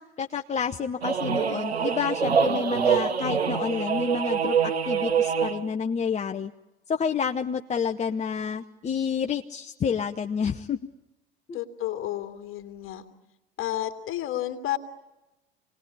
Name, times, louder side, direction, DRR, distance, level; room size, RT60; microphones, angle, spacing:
voice 1, 0.0-6.5 6.9-10.8 11.5-11.6, left 6 dB, 20° left, 4 dB, 0.8 m, -29 dB
sound 1, 1.0-5.7, right 7 dB, 85° right, 0.9 m, -25 dB
voice 2, 11.5-13.0 13.6-14.8, left 13 dB, 40° left, 6 dB, 2.4 m, -31 dB
27.0 x 19.0 x 9.9 m, 0.98 s
figure-of-eight pair, 70°, 31 cm